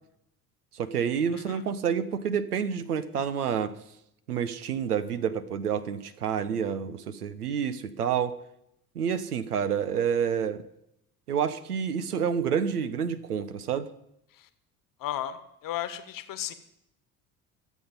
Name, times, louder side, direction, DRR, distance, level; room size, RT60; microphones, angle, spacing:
voice 1, 0.7-3.7 4.3-8.4 8.9-10.6 11.3-13.9, right 7 dB, 80° right, 12 dB, 1.0 m, -28 dB
voice 2, 1.3-1.7 14.3-14.5 15.0-16.5, left 12 dB, 45° left, 12 dB, 1.5 m, -35 dB
24.5 x 8.4 x 5.4 m, 0.79 s
figure-of-eight pair, 55°, 45 cm